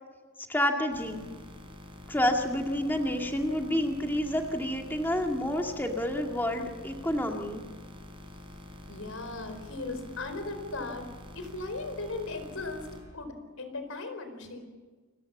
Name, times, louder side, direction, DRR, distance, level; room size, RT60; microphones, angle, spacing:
voice 1, 0.5-1.3 2.1-7.6, left 1 dB, 10° left, 2 dB, 2.1 m, -29 dB
sound 1, 0.9-13.0, left 1 dB, 25° right, 4.8 m, -47 dB
voice 2, 8.9-11.1 11.3-12.9 13.1-14.6, left 3 dB, 70° left, 8 dB, 4.4 m, -37 dB
29.0 x 21.0 x 7.2 m, 1.4 s
head